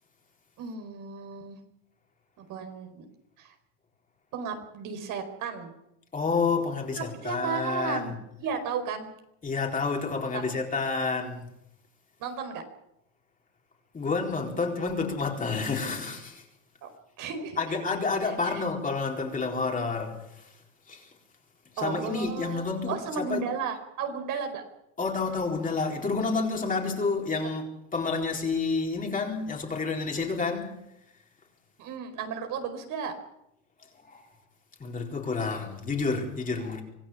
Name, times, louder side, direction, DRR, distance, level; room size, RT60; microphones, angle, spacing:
voice 1, 0.6-1.6 2.4-3.1 3.4-3.5 4.3-5.7 7.0-9.1 10.3-10.4 12.2-12.6 16.8-16.9 17.2-17.6 18.2-18.6 21.8-24.6 31.8-33.1, right 6 dB, 60° right, 4.6 m, -34 dB
voice 2, 6.1-8.2 9.4-11.5 13.9-16.4 17.6-20.5 20.9-21.1 21.8-23.4 25.0-30.8 34.1-34.3 34.8-36.8, left 4 dB, 20° left, 4.4 m, -29 dB
25.5 x 16.0 x 7.3 m
cardioid pair, 125°, 36 cm